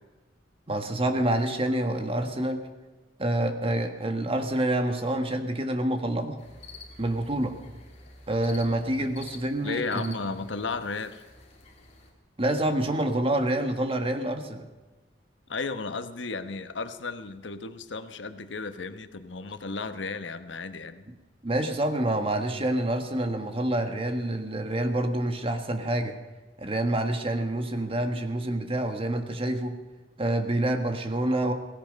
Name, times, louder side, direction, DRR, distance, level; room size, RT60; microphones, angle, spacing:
voice 1, 0.7-2.6 3.2-6.4 7.0-7.6 8.3-10.1 12.4-14.6 21.4-26.2 26.6-29.8 30.2-31.5, right 1 dB, 30° right, 6 dB, 1.6 m, -27 dB
sound 1, 6.4-12.1, left 3 dB, 40° left, 3.2 m, -49 dB
voice 2, 9.6-11.2 15.5-21.0, left 4 dB, 90° left, 10 dB, 1.1 m, -34 dB
17.0 x 16.0 x 5.3 m, 1.3 s
head